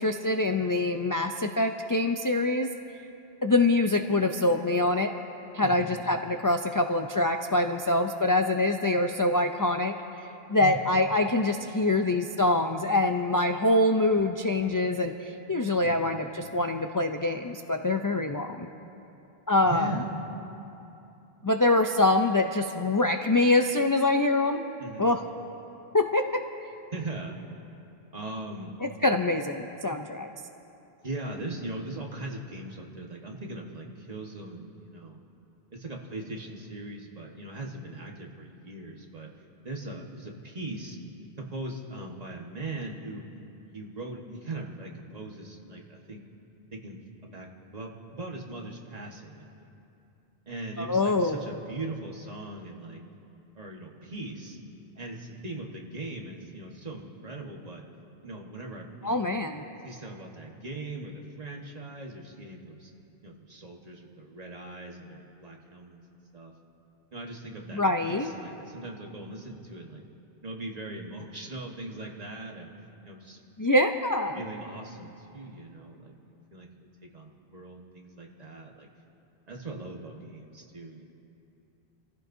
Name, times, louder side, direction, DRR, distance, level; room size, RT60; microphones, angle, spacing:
voice 1, 0.0-2.7 3.4-5.1 5.5-9.9 10.5-18.7 19.5-19.9 21.4-24.6 25.0-25.2 25.9-26.4 28.8-30.3 50.8-51.4 59.0-59.7 67.7-68.3 73.6-74.4, left 2 dB, 35° left, 5 dB, 0.3 m, -25 dB
voice 2, 10.6-11.0 15.8-16.0 19.6-20.3 24.8-25.1 26.9-27.4 28.1-28.7 31.0-35.2 35.7-39.3 39.6-41.0 41.4-43.3 43.7-46.2 46.7-49.7 50.5-53.0 53.5-54.6 55.0-57.8 58.2-59.2 59.8-62.9 63.2-66.0 66.3-66.5 67.1-70.0 70.4-72.7 73.0-73.4 74.3-76.7 77.1-78.9 79.5-81.1, right 2 dB, 40° right, 0 dB, 1.5 m, -40 dB
26.5 x 15.0 x 2.7 m, 2.8 s
omnidirectional pair, 1.1 m